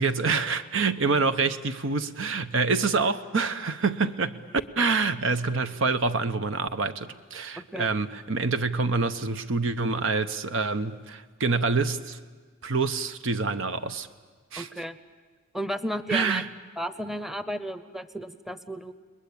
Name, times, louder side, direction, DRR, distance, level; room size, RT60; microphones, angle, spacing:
voice 1, 0.0-4.3 4.8-12.2 12.6-14.1 14.5-14.7 16.1-16.5, right 4 dB, 70° right, 0.9 m, -26 dB
voice 2, 7.6-7.9 14.6-15.0 15.5-16.4 16.8-18.9, equal, ahead, 0.8 m, -33 dB
30.0 x 21.0 x 8.6 m
head